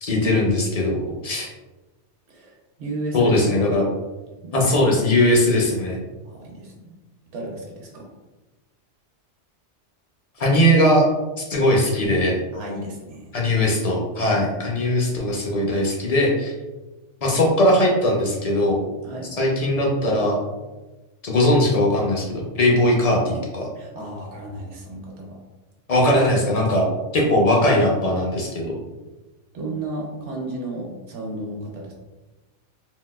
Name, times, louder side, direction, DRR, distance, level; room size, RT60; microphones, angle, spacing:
voice 1, 0.0-1.0 1.2-1.5 3.1-3.9 4.5-6.0 10.4-11.1 11.5-12.4 13.3-16.5 17.2-18.8 19.3-20.4 21.2-23.7 25.9-28.8, left 1 dB, 45° left, -1 dB, 0.5 m, -19 dB
voice 2, 2.3-3.6 4.4-4.8 6.2-6.9 7.3-8.1 12.5-13.3 14.2-14.7 19.0-19.3 23.8-25.4 29.5-31.9, right 1 dB, 75° right, -1 dB, 1.0 m, -33 dB
3.9 x 2.3 x 2.2 m, 1.1 s
omnidirectional pair, 1.2 m